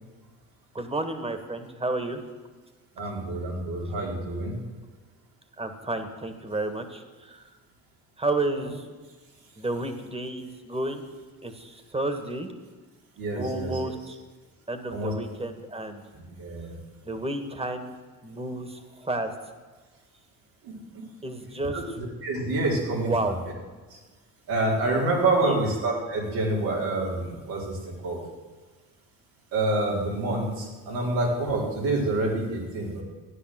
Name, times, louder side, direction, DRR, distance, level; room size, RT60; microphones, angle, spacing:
voice 1, 0.7-2.2 5.6-7.5 8.2-8.8 9.6-11.0 11.4-12.5 13.4-14.2 14.7-16.0 17.0-17.9 18.2-19.3 21.2-21.8 23.0-23.3 25.4-25.6, right 2 dB, 15° right, 8 dB, 1.9 m, -31 dB
voice 2, 3.0-4.6 13.2-13.8 14.9-15.1 16.1-16.8 20.6-21.1 21.7-23.3 23.9-24.0 24.5-28.2 29.5-33.0, right 2 dB, 85° right, -2 dB, 4.2 m, -27 dB
14.5 x 10.0 x 7.8 m, 1.3 s
supercardioid pair, 80°, 35 cm